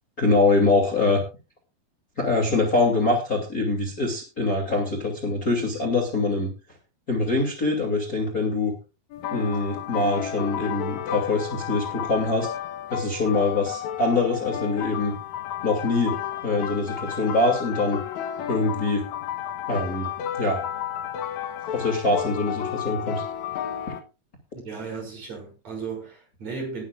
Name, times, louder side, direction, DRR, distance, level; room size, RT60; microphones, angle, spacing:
voice 1, 0.2-1.2 2.2-6.5 7.1-8.7 9.3-12.5 12.9-15.1 15.6-16.1 16.4-18.0 18.5-19.0 19.7-20.1 20.4-20.6 21.7-23.2, left 3 dB, 25° left, 2.6 m, -24 dB
sound 1, 9.1-24.0, left 10 dB, 65° left, 2.0 m, -32 dB
voice 2, 24.5-26.8, right 4 dB, 45° right, 7.2 m, -35 dB
19.5 x 11.0 x 2.4 m
omnidirectional pair, 4.4 m